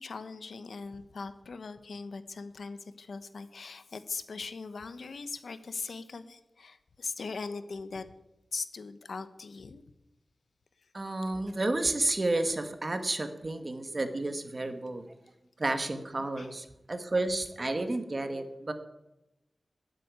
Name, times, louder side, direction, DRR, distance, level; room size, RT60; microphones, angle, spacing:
voice 1, 0.0-8.1 8.5-9.8 10.8-10.9 16.4-16.5, left 4 dB, 75° left, 11 dB, 1.0 m, -40 dB
voice 2, 10.9-15.0 15.6-18.7, right 2 dB, 35° right, 7 dB, 1.6 m, -31 dB
13.0 x 7.7 x 9.5 m, 0.91 s
wide cardioid pair, 115°, 0 cm